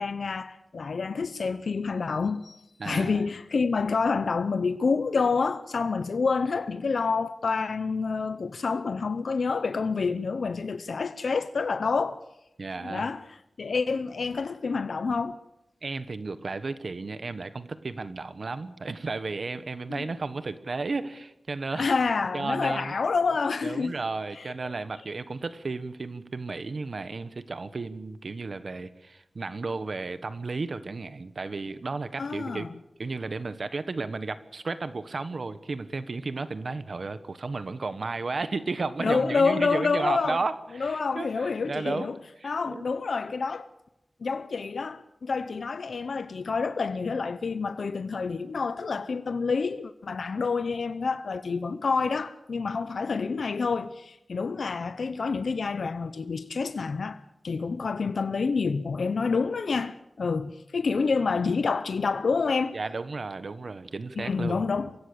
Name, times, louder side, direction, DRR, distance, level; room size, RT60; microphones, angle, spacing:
voice 1, 0.0-12.2 12.8-15.4 19.9-20.1 21.7-23.9 24.3-24.5 32.2-32.8 39.0-40.4 40.7-42.1 42.4-43.7 44.2-62.7 64.2-65.0, left 4 dB, 90° left, 0.8 m, -28 dB
voice 2, 2.8-3.2 12.6-13.1 15.8-21.9 22.3-22.9 23.6-32.7 33.0-42.1 42.4-42.8 62.7-64.6, right 3 dB, 65° right, 1.4 m, -33 dB
24.5 x 16.0 x 8.7 m
wide cardioid pair, 75°, 0 cm